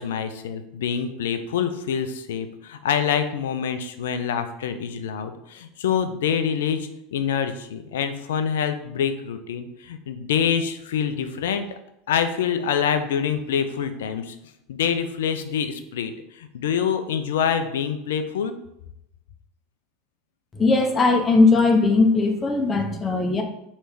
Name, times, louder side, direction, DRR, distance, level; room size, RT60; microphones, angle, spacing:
voice 1, 0.0-11.8 12.1-14.4 14.7-18.5, left 7 dB, 70° left, 9 dB, 0.4 m, -26 dB
voice 2, 20.5-23.4, left 3 dB, 25° left, 4 dB, 0.6 m, -19 dB
3.2 x 3.2 x 4.6 m, 0.82 s
hypercardioid pair, 80°, 0 cm